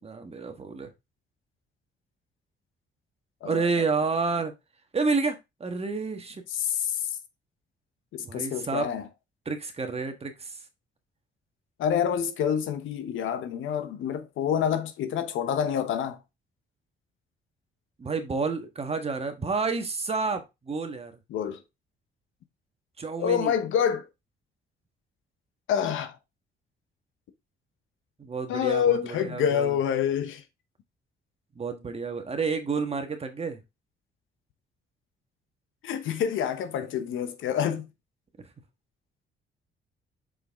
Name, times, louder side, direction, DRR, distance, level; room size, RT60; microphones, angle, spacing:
voice 1, 0.0-0.9 3.4-4.5 4.9-6.4 8.2-8.9 9.4-10.6 18.0-21.1 23.0-23.5 28.2-29.7 31.5-33.6, right 4 dB, 30° right, 1.4 m, -30 dB
voice 2, 6.5-7.2 8.1-9.1 11.8-16.2 21.3-21.6 23.2-24.1 25.7-26.2 28.5-30.4 35.8-37.9, left 8 dB, 80° left, 1.0 m, -27 dB
6.3 x 4.9 x 3.6 m
cardioid pair, 90°, 20 cm